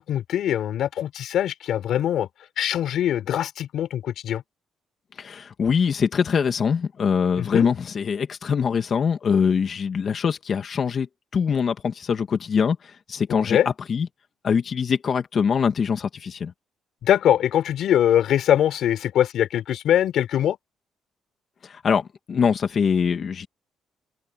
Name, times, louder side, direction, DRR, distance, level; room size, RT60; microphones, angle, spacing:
voice 1, 0.0-2.3 2.6-4.4 7.4-7.7 13.3-13.7 17.0-20.6, left 11 dB, 75° left, 4.2 m, -22 dB
voice 2, 5.2-11.1 11.3-13.6 13.9-14.1 14.4-16.5 21.6-23.5, left 6 dB, 50° left, 2.3 m, -23 dB
open air
cardioid pair, 90°, 0 cm